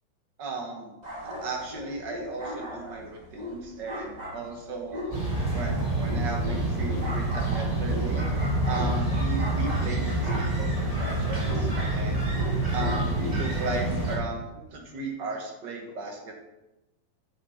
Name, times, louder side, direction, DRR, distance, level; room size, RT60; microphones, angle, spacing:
voice 1, 0.4-0.9 1.2-5.2 5.5-8.3 8.7-12.2 12.7-16.4, right 3 dB, 70° right, 1 dB, 1.0 m, -36 dB
sound 1, 1.0-13.6, left 1 dB, 25° right, 0.8 m, -38 dB
sound 2, 5.1-14.2, right 2 dB, 10° right, 2.6 m, -27 dB
7.9 x 7.7 x 5.7 m, 0.99 s
omnidirectional pair, 4.1 m